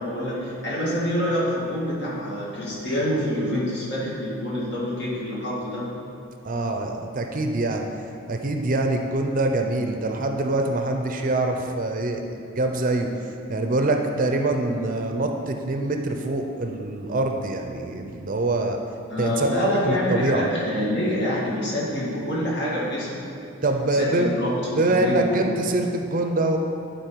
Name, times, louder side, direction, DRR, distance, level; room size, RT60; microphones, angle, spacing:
voice 1, 0.0-5.9 19.1-23.4 23.9-25.5, left 1 dB, 60° left, -6 dB, 2.0 m, -26 dB
voice 2, 6.4-7.8 8.3-12.2 12.6-13.1 13.5-18.8 19.2-20.5 23.6-24.3 24.7-26.6, right 2 dB, 45° right, 4 dB, 0.6 m, -24 dB
11.0 x 4.3 x 4.6 m, 2.6 s
head